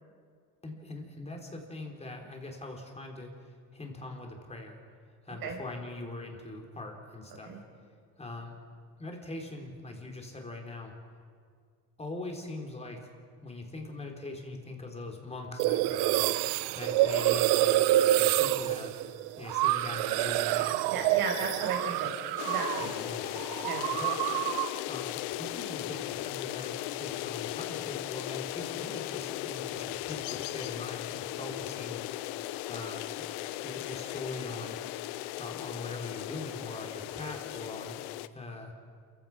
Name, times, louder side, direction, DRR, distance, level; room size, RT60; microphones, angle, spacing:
voice 1, 0.6-4.8 5.2-7.5 8.2-8.6 9.0-10.9 12.0-13.1 13.4-16.4 16.7-18.9 19.4-21.2 22.0-22.1 22.8-23.4 23.9-24.2 24.6-32.3 32.7-33.3 33.6-34.8 35.4-38.0 38.3-38.7, left 2 dB, 15° left, 2 dB, 4.0 m, -42 dB
sound 1, 15.6-23.0 23.3-24.8, right 14 dB, 80° right, 0.8 m, -27 dB
voice 2, 20.9-22.1 22.4-22.9 23.6-23.8, right 4 dB, 60° right, 2 dB, 5.6 m, -34 dB
sound 2, 22.4-38.3, left 16 dB, 75° left, 0.8 m, -37 dB
28.0 x 15.5 x 6.0 m, 2.1 s
cardioid pair, 105°, 39 cm